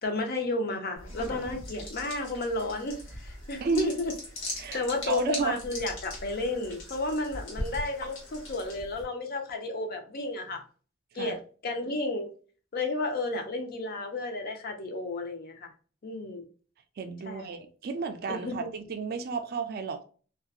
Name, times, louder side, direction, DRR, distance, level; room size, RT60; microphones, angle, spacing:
voice 1, 0.0-4.1 4.7-10.6 11.1-11.4 11.6-12.3 12.7-15.7 16.0-16.5 17.3-17.6 18.3-18.7, left 2 dB, 50° left, 0.5 m, -32 dB
sound 1, 1.0-9.0, left 1 dB, 70° left, 1.2 m, -40 dB
voice 2, 3.6-3.9 4.6-5.6 11.1-11.4 17.0-20.0, right 4 dB, 50° right, 0.3 m, -32 dB
2.7 x 2.2 x 2.3 m
head